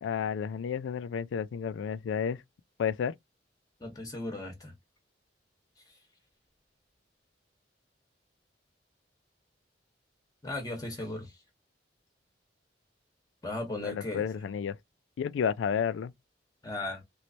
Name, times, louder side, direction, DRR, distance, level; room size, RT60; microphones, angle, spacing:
voice 1, 0.0-2.4 2.8-3.1 13.8-14.8 15.2-16.1, left 7 dB, 80° left, 0.3 m, -31 dB
voice 2, 3.8-4.7 10.4-11.3 13.4-14.2 16.6-17.0, left 2 dB, 20° left, 0.9 m, -36 dB
3.1 x 3.1 x 2.7 m
head